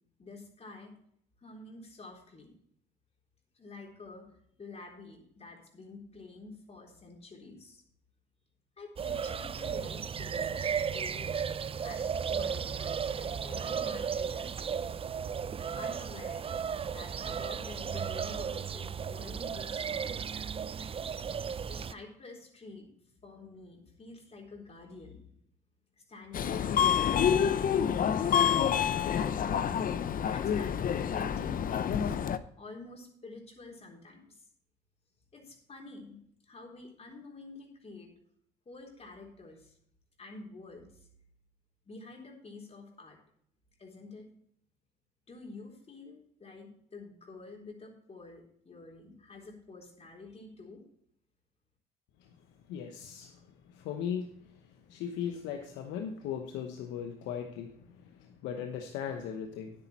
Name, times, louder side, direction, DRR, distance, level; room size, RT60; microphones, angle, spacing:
voice 1, 0.2-0.9 1.4-2.5 3.6-4.3 4.6-7.8 8.8-11.3 11.8-14.8 15.8-16.4 16.9-20.4 21.7-25.2 26.1-29.1 30.2-32.1 32.6-34.4 35.3-38.1 38.7-39.8 40.2-40.9 41.9-43.2 43.8-44.3 45.3-50.8, left 3 dB, 35° left, 0 dB, 3.8 m, -49 dB
sound 1, 9.0-21.9, right 7 dB, 30° right, 0.5 m, -35 dB
Subway metro underground, 26.3-32.4, left 8 dB, 50° left, 0.7 m, -28 dB
voice 2, 52.7-53.4 53.7-54.3 54.9-59.7, left 8 dB, 80° left, 4 dB, 1.0 m, -38 dB
9.8 x 8.8 x 4.2 m, 0.67 s
supercardioid pair, 70°, 18 cm